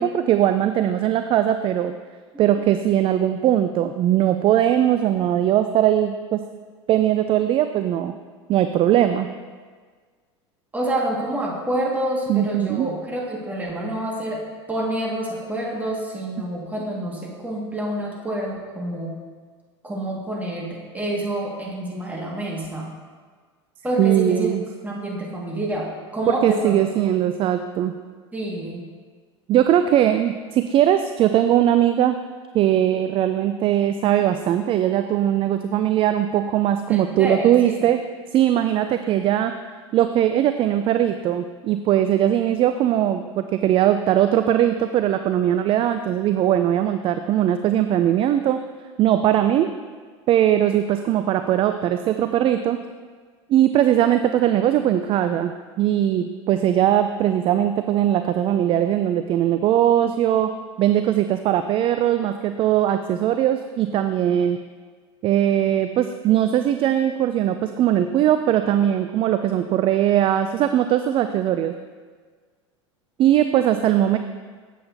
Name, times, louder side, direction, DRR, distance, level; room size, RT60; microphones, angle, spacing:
voice 1, 0.0-1.9 2.4-6.4 6.9-8.2 8.5-9.3 12.3-12.9 24.0-24.6 26.4-27.9 29.5-32.2 32.5-38.0 38.3-39.5 39.9-48.6 49.0-49.7 50.3-52.8 53.5-60.5 60.8-64.6 65.2-71.7 73.2-74.2, right 11 dB, 35° right, 9 dB, 0.4 m, -20 dB
voice 2, 10.7-14.4 14.7-19.2 19.8-22.9 23.8-24.5 24.8-26.8 28.3-28.8 36.9-37.8, right 1 dB, 10° right, -3 dB, 2.0 m, -28 dB
8.6 x 7.4 x 2.8 m, 1.5 s
hypercardioid pair, 85°, 15 cm